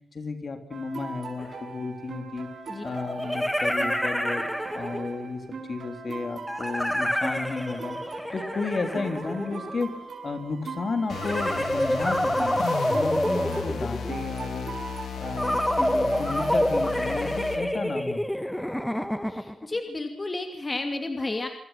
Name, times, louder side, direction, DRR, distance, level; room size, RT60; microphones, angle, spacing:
voice 1, 0.1-2.5 2.8-4.4 4.7-5.4 5.7-8.0 8.3-9.9 10.2-12.6 12.9-14.7 15.2-18.2, left 4 dB, 45° left, 7 dB, 3.7 m, -32 dB
sound 1, 0.7-16.9, right 4 dB, 60° right, 6.1 m, -40 dB
sound 2, 1.4-1.5 2.9-5.2 6.5-9.9 11.2-14.2 15.4-19.7, equal, 5° left, 1.4 m, -28 dB
sound 3, 11.1-17.7, left 7 dB, 85° left, 2.5 m, -35 dB
voice 2, 19.3-21.5, left 2 dB, 25° left, 5 dB, 2.7 m, -32 dB
28.0 x 25.0 x 6.0 m, 0.63 s
wide cardioid pair, 130°, 0 cm